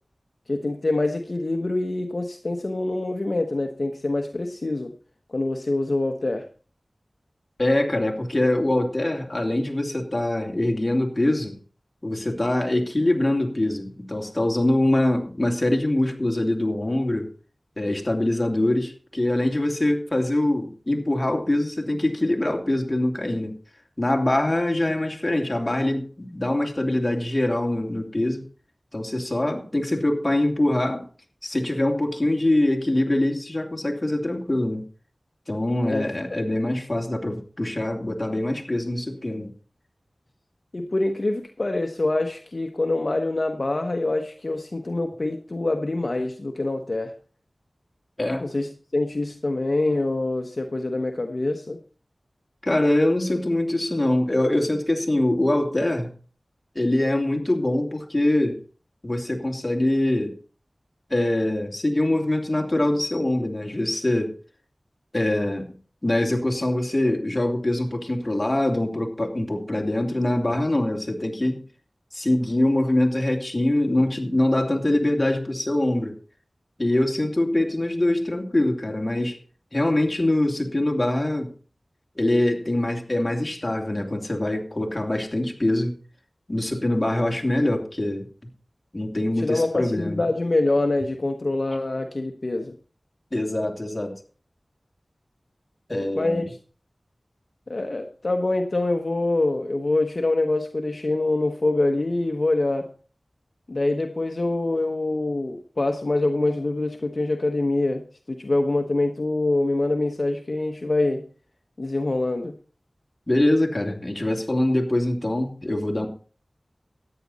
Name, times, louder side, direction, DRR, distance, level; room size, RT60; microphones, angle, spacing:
voice 1, 0.5-4.9 5.3-6.4 35.8-36.1 40.7-47.1 48.4-51.8 89.4-92.7 96.0-96.6 97.7-102.9 103.7-111.2 111.8-112.5, left 2 dB, 60° left, 4 dB, 1.2 m, -25 dB
voice 2, 7.6-11.6 12.0-17.3 17.8-23.5 24.0-28.4 28.9-31.0 31.4-34.8 35.5-39.5 48.2-48.5 52.6-56.1 56.7-58.6 59.0-60.3 61.1-64.3 65.1-65.7 66.0-71.6 72.1-76.1 76.8-79.4 79.7-81.5 82.2-85.9 86.5-88.3 88.9-90.2 93.3-94.1 95.9-96.4 113.3-116.1, left 1 dB, 35° left, 2 dB, 2.7 m, -23 dB
13.5 x 9.7 x 4.2 m, 0.39 s
wide cardioid pair, 40°, 0 cm